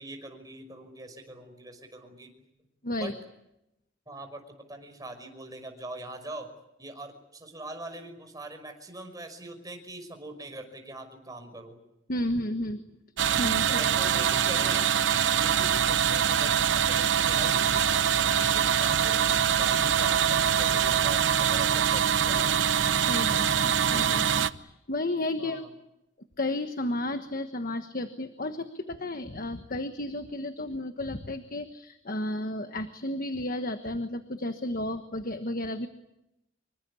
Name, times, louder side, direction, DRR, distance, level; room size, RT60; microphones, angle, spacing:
voice 1, 0.0-2.3 3.0-3.1 4.1-6.5 6.8-11.8 13.6-14.9 15.3-22.6 25.4-25.7, right 1 dB, 20° right, 5 dB, 5.6 m, -42 dB
voice 2, 12.1-12.8 13.4-13.8 23.1-25.6 26.4-35.9, left 1 dB, 50° left, 8 dB, 1.3 m, -32 dB
sound 1, 13.2-24.5, right 8 dB, 70° right, 0.9 m, -24 dB
26.5 x 23.5 x 8.5 m, 0.86 s
head